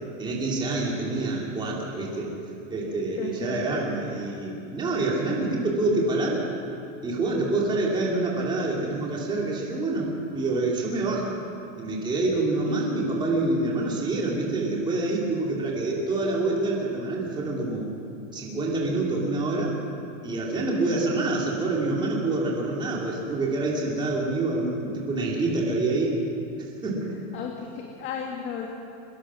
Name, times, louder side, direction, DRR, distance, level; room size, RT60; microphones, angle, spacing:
voice 1, 0.2-2.3 2.7-6.4 7.0-11.4 11.8-17.9 18.3-19.8 20.2-26.2 26.8-27.1, right 2 dB, 10° right, -3 dB, 2.9 m, -26 dB
voice 2, 3.2-3.7 20.7-21.1 27.3-28.7, left 7 dB, 30° left, 0 dB, 1.9 m, -34 dB
24.5 x 21.5 x 6.3 m, 2.6 s
supercardioid pair, 175°, 38 cm